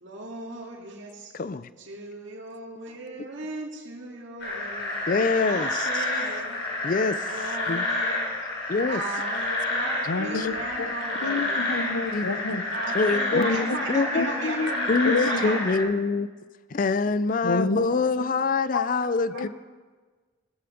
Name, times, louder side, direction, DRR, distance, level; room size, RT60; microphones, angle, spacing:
voice 1, 0.0-1.3 1.9-5.0 5.5-6.6 7.3-8.2 8.8-11.6 12.2-15.7 19.3-19.5, right 2 dB, 65° right, -3 dB, 2.2 m, -36 dB
voice 2, 1.3-1.7 5.1-6.1 6.8-7.9 8.7-9.0 10.3-10.5 12.1-12.6 12.9-14.3 14.9-15.1 15.4-16.3 16.7-19.5, left 4 dB, 40° left, 15 dB, 0.4 m, -25 dB
sound 1, 4.4-15.8, left 2 dB, 55° left, 5.2 m, -29 dB
voice 3, 10.1-10.9 11.2-12.6 13.3-13.8 14.2-14.7 15.0-15.4 17.4-17.8 18.7-18.8 19.4-19.5, left 3 dB, 85° left, 12 dB, 0.8 m, -28 dB
18.0 x 14.0 x 5.1 m, 1.4 s
head